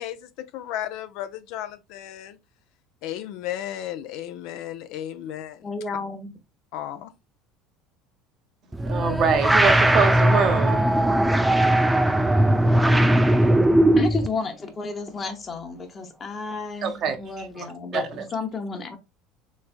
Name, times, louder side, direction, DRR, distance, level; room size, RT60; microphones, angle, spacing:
voice 1, 0.0-2.4 3.0-5.7 6.7-7.1, left 12 dB, 70° left, 0.4 m, -34 dB
voice 2, 5.6-6.3 14.0-19.0, left 4 dB, 30° left, 1.0 m, -32 dB
sound 1, 8.7-14.3, right 1 dB, 10° right, 0.4 m, -19 dB
voice 3, 8.9-10.8 16.8-17.3 17.9-18.2, right 6 dB, 50° right, 0.8 m, -24 dB
3.4 x 3.2 x 2.4 m
supercardioid pair, 90°, 0 cm